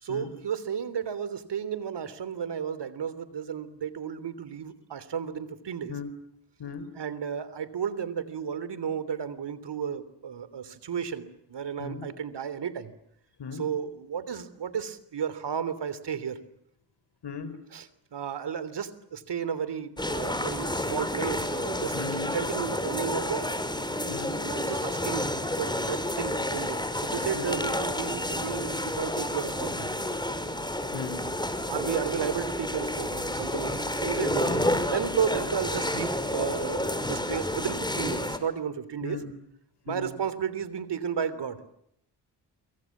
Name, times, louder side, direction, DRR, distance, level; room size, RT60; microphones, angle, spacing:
voice 1, 0.0-5.9 6.9-12.9 13.5-16.4 17.7-23.5 24.4-25.3 25.6-29.9 31.7-39.2 39.8-41.6, right 7 dB, 70° right, 15 dB, 3.4 m, -33 dB
sound 1, 20.0-38.4, left 1 dB, 10° left, 5.2 m, -30 dB
voice 2, 21.9-22.4 24.1-24.4 27.3-27.6 30.9-31.2 34.5-34.6 39.0-39.3 39.9-40.1, left 5 dB, 70° left, 12 dB, 5.3 m, -37 dB
28.0 x 25.0 x 7.4 m, 0.76 s
cardioid pair, 55°, 43 cm